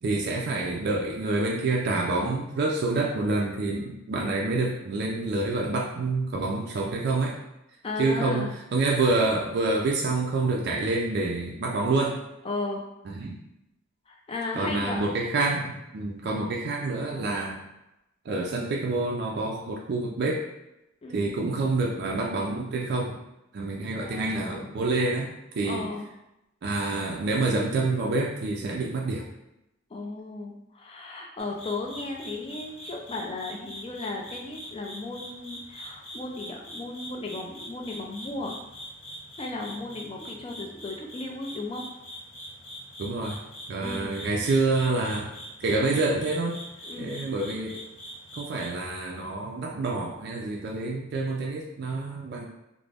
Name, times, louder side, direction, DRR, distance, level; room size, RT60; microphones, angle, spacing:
voice 1, 0.0-7.4 8.0-12.2 13.1-13.4 14.5-17.6 18.3-20.5 21.1-23.2 23.5-25.9 26.6-29.3 43.0-43.4 43.7-45.3 45.6-46.6 47.0-47.8 48.3-52.5, right 3 dB, 55° right, -2 dB, 0.4 m, -27 dB
voice 2, 7.8-8.5 12.4-12.8 14.1-15.0 21.0-21.3 24.0-24.7 25.6-26.0 29.9-38.6 39.4-41.9 43.8-44.2 46.9-47.2, left 3 dB, 25° left, 0 dB, 0.4 m, -35 dB
sound 1, 31.4-48.7, equal, 85° left, 0.8 m, -43 dB
2.5 x 2.1 x 3.2 m, 0.90 s
head